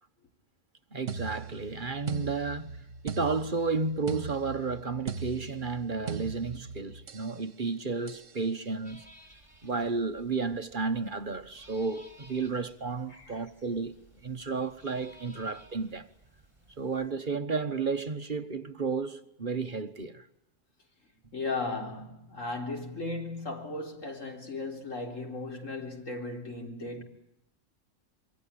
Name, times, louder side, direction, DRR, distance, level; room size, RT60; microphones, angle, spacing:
voice 1, 0.9-9.0 9.6-13.9 14.2-16.1 16.8-20.3, right 4 dB, 40° right, 1.3 m, -32 dB
sound 1, 1.1-7.4 8.1-8.4, right 6 dB, 75° right, 1.6 m, -39 dB
sound 2, 8.8-17.1, right 1 dB, 25° right, 5.9 m, -57 dB
voice 2, 13.1-13.5 21.3-27.0, left 3 dB, 80° left, 4.2 m, -36 dB
26.5 x 23.5 x 8.7 m
omnidirectional pair, 1.3 m